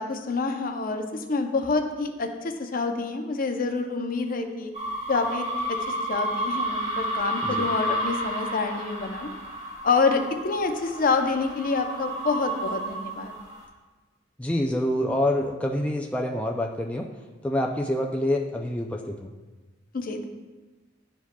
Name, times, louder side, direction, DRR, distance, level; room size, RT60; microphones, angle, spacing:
voice 1, 0.0-4.7 5.1-9.3 9.8-13.3 19.9-20.3, left 4 dB, 50° left, 5 dB, 0.6 m, -27 dB
sound 1, 4.7-13.6, right 1 dB, 40° right, 1.4 m, -31 dB
voice 2, 14.4-17.1 17.4-19.3, left 1 dB, 5° left, 0 dB, 0.3 m, -26 dB
11.5 x 4.7 x 2.2 m, 1.3 s
head